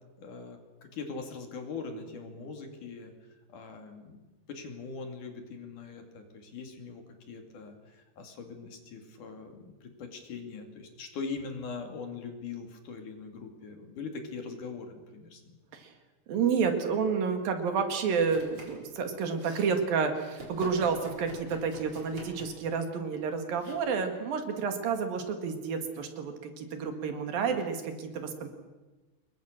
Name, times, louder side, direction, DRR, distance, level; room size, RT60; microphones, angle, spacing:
voice 1, 0.2-3.1 3.5-4.2 4.5-15.6, left 4 dB, 60° left, 5 dB, 3.9 m, -41 dB
voice 2, 16.3-28.5, right 5 dB, 70° right, 6 dB, 3.8 m, -30 dB
Domestic sounds home sounds, 18.2-18.9 19.1-19.7 20.3-22.7 23.5-23.7, right 2 dB, 35° right, 4.7 m, -46 dB
26.5 x 22.0 x 6.6 m, 1.2 s
omnidirectional pair, 4.2 m